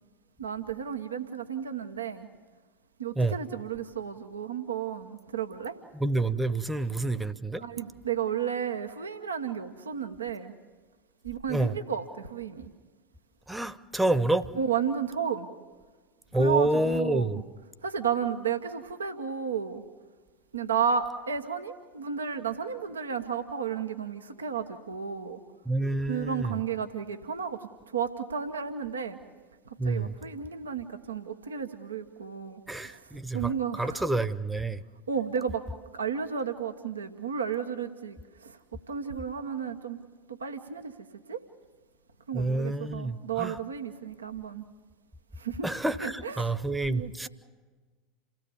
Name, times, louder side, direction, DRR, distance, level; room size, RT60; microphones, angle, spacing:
voice 1, 0.4-2.3 3.0-5.8 7.6-10.5 11.2-12.7 14.5-15.5 16.4-17.4 17.8-19.8 20.5-25.4 26.1-27.6 27.9-29.2 29.8-33.0 33.3-34.1 35.1-35.6 35.9-38.6 38.9-40.0 40.3-40.9 41.3-41.4 42.3-44.6 45.4-45.7 46.0-46.5 46.9-47.3, right 7 dB, 80° right, 7 dB, 1.1 m, -33 dB
voice 2, 6.0-7.6 11.5-11.7 13.5-14.5 16.3-17.4 25.7-26.6 29.8-30.1 32.7-34.8 42.3-43.5 45.6-47.3, right 2 dB, 5° right, 15 dB, 1.0 m, -28 dB
28.5 x 16.5 x 7.1 m, 1.4 s
figure-of-eight pair, 80°, 0 cm